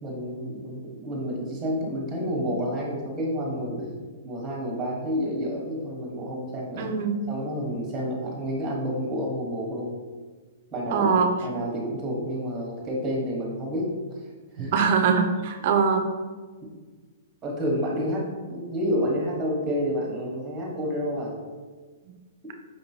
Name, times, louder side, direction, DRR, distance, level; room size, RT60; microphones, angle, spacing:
voice 1, 0.0-3.9 4.2-6.9 7.3-9.9 10.7-11.1 11.4-14.2 14.5-14.7 17.4-21.3, equal, 20° right, -2 dB, 1.1 m, -29 dB
voice 2, 6.8-7.2 10.9-11.3 14.7-16.0, right 6 dB, 50° right, 5 dB, 0.5 m, -22 dB
5.3 x 3.0 x 2.7 m, 1.4 s
hypercardioid pair, 140°, 0 cm